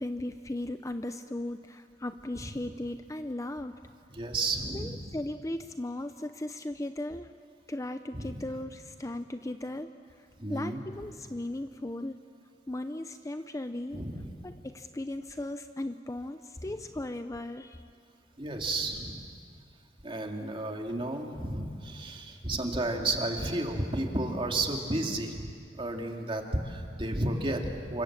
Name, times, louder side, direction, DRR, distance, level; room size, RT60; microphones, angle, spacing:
voice 1, 0.0-3.7 4.7-7.3 7.7-9.9 10.2-12.2 12.7-14.0 14.4-17.8, left 1 dB, 20° left, 9 dB, 0.6 m, -37 dB
voice 2, 4.1-5.1 8.1-8.4 10.4-10.8 13.9-14.3 16.6-16.7 18.4-19.3 20.0-28.0, right 2 dB, 30° right, 2 dB, 2.5 m, -32 dB
28.5 x 24.5 x 7.4 m, 2.3 s
head